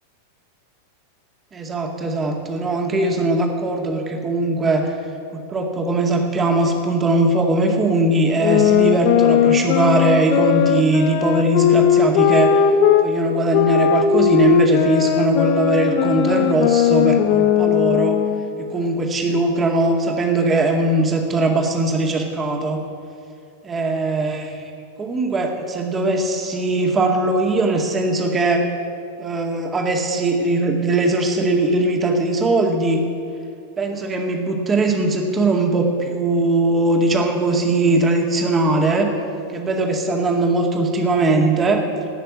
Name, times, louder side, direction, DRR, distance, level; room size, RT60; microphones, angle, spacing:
voice 1, 1.5-4.9 5.3-12.6 13.0-18.2 18.6-22.8 23.6-24.7 25.0-28.7 29.2-33.0 33.8-39.1 39.5-41.8, right 2 dB, 20° right, 2 dB, 2.2 m, -20 dB
sound 1, 8.4-13.1 13.5-18.5, left 9 dB, 45° left, 0.9 m, -17 dB
18.0 x 6.7 x 9.6 m, 2.5 s
figure-of-eight pair, 90°, 0 cm